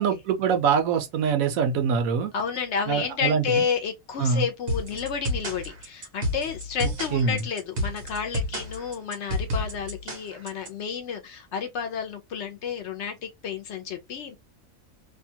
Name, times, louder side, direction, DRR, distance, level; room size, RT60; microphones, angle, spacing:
voice 1, 0.0-2.3 2.9-3.4 4.2-4.4 7.1-7.4, right 6 dB, 80° right, 1.1 m, -23 dB
voice 2, 2.3-14.4, left 6 dB, 65° left, 0.8 m, -31 dB
sound 1, 4.7-10.7, equal, 55° right, 1.2 m, -30 dB
2.8 x 2.2 x 2.7 m
omnidirectional pair, 1.4 m